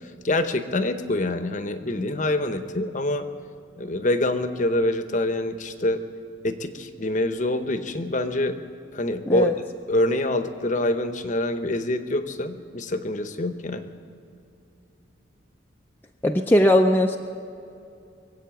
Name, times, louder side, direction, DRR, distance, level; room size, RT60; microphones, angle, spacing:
voice 1, 0.2-3.3 3.8-6.0 6.4-8.6 8.9-9.6 9.9-13.9, left 1 dB, 40° left, 9 dB, 0.8 m, -25 dB
voice 2, 16.2-17.2, left 1 dB, 10° left, 2 dB, 0.4 m, -19 dB
23.0 x 8.4 x 7.1 m, 2.6 s
head